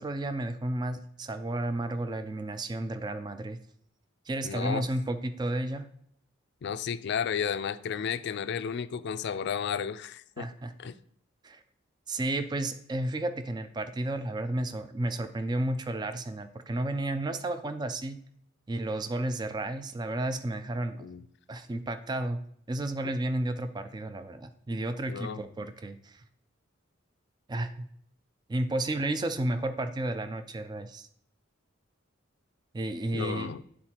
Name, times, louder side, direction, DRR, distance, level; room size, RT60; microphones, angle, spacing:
voice 1, 0.0-3.6 4.3-5.9 10.4-10.7 11.4-11.6 12.1-18.2 18.7-21.1 21.5-22.4 22.7-26.2 27.5-27.9 28.5-31.1 32.7-33.5, right 1 dB, 20° right, 9 dB, 0.3 m, -32 dB
voice 2, 4.4-4.8 6.6-10.4 10.8-10.9 21.0-21.2 25.1-25.5 33.1-33.6, left 7 dB, 55° left, 13 dB, 0.3 m, -33 dB
9.6 x 4.2 x 2.9 m, 0.68 s
head